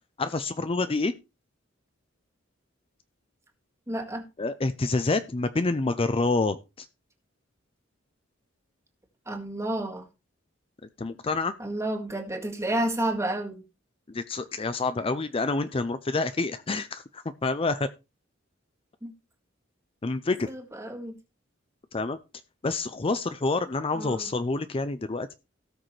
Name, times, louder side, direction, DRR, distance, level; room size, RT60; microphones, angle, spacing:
voice 1, 0.2-1.1 4.4-6.9 11.0-11.5 14.1-17.9 20.0-20.5 21.9-22.2 22.6-25.3, left 3 dB, 30° left, 0.5 m, -27 dB
voice 2, 3.9-4.2 9.3-10.1 11.6-13.6 19.0-19.1 20.5-21.1 23.9-24.3, right 1 dB, 15° right, 1.9 m, -30 dB
17.5 x 6.4 x 3.2 m
head